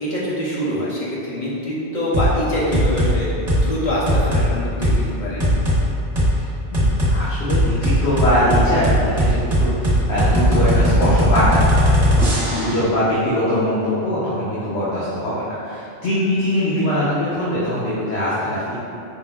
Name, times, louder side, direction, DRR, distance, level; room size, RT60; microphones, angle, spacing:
voice 1, 0.0-3.3 3.6-5.5 12.5-12.8, equal, 45° left, -8 dB, 1.0 m, -24 dB
sound 1, 2.1-2.3 2.7-3.1 3.5-3.7 4.1-4.5 4.8-5.0 5.4-5.8 6.2-6.3 6.7-7.1 7.5-12.8, equal, 40° right, 1.1 m, -17 dB
voice 2, 6.7-11.7 12.5-18.8, left 1 dB, 80° left, -10 dB, 1.1 m, -22 dB
5.1 x 2.0 x 3.4 m, 2.6 s
omnidirectional pair, 1.1 m